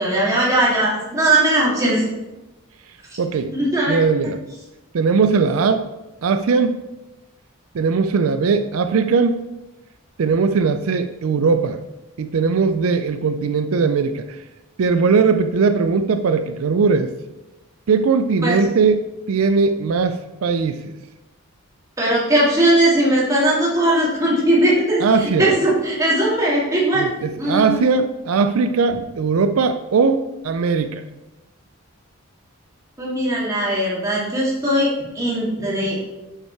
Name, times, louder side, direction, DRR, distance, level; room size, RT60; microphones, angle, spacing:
voice 1, 0.0-2.1 3.5-4.0 18.4-18.6 22.0-27.0 27.4-27.9 33.0-36.0, right 1 dB, 15° right, -6 dB, 2.3 m, -19 dB
voice 2, 3.2-3.5 3.9-4.4 4.9-5.9 6.2-6.8 7.7-9.4 10.2-11.8 12.2-14.3 14.8-17.1 17.9-20.9 25.0-25.5 27.0-31.0, right 5 dB, 80° right, 9 dB, 0.4 m, -19 dB
7.3 x 5.5 x 4.7 m, 1.0 s
head